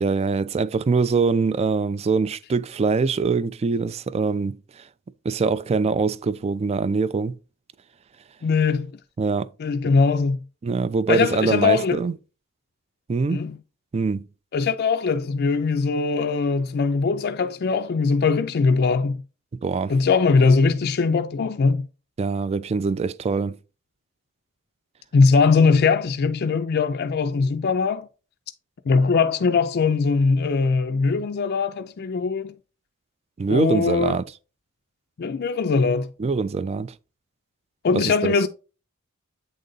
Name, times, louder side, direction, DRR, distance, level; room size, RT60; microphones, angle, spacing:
voice 1, 0.0-4.6 5.2-7.4 9.2-9.5 10.6-12.1 13.1-13.4 13.9-14.3 19.6-19.9 22.2-23.6 33.4-34.2 36.2-36.9 37.9-38.3, right 4 dB, 30° right, 0.3 m, -23 dB
voice 2, 8.4-8.9 9.6-10.4 11.1-12.0 13.3-13.6 14.5-19.2 19.9-21.9 25.1-28.1 28.9-32.5 33.5-34.2 35.2-36.1 37.8-38.5, left 4 dB, 50° left, 0.4 m, -21 dB
8.2 x 3.9 x 3.9 m
head